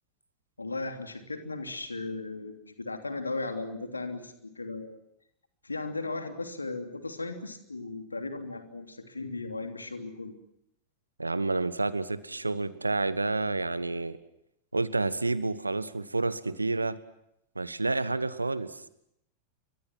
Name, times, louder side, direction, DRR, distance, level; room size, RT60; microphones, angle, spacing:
voice 1, 0.6-5.0 5.6-10.3, left 3 dB, 80° left, 6 dB, 3.0 m, -36 dB
voice 2, 11.2-14.2 14.7-17.0 17.5-18.8, right 3 dB, 80° right, 16 dB, 1.3 m, -29 dB
29.5 x 24.0 x 6.1 m, 0.76 s
figure-of-eight pair, 90°, 0 cm